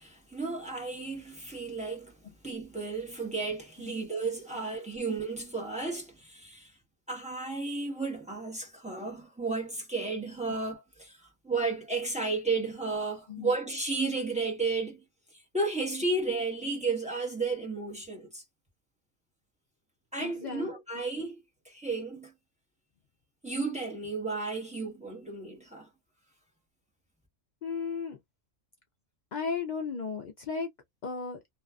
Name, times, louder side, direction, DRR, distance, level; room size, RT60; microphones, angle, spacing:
voice 1, 0.0-2.2 2.4-6.7 7.1-15.0 15.3-18.4 20.1-22.3 23.4-25.9, right 3 dB, 5° right, 0.9 m, -33 dB
voice 2, 20.2-20.7 27.6-28.2 29.3-30.7 31.0-31.4, left 5 dB, 75° left, 0.4 m, -34 dB
2.6 x 2.4 x 2.3 m
omnidirectional pair, 1.4 m